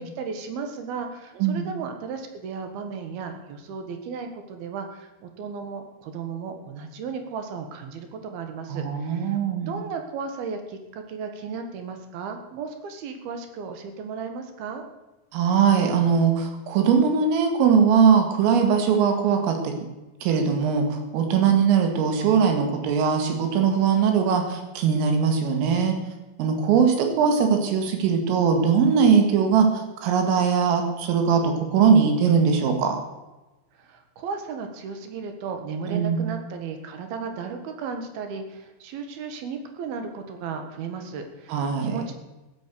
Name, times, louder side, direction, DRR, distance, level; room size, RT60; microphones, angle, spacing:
voice 1, 0.0-14.8 33.8-42.1, right 5 dB, 60° right, 6 dB, 3.0 m, -35 dB
voice 2, 8.7-9.7 15.3-19.7 20.2-26.0 26.4-29.7 30.0-33.0 35.9-36.3 41.5-42.0, right 6 dB, 80° right, 5 dB, 4.5 m, -20 dB
14.5 x 10.5 x 6.9 m, 1.1 s
omnidirectional pair, 5.8 m